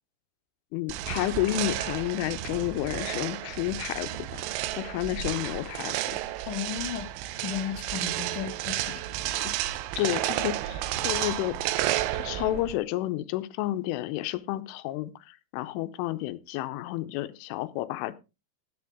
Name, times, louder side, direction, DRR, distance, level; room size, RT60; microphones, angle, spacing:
voice 1, 0.7-4.4 4.7-6.2 9.4-9.5 10.0-11.6 12.1-18.2, left 15 dB, 90° left, 12 dB, 3.3 m, -31 dB
sound 1, 0.9-12.8, right 14 dB, 85° right, 3.2 m, -32 dB
voice 2, 6.5-7.1 7.4-8.9, left 8 dB, 55° left, 3 dB, 2.9 m, -34 dB
13.5 x 9.6 x 3.6 m, 0.27 s
omnidirectional pair, 5.5 m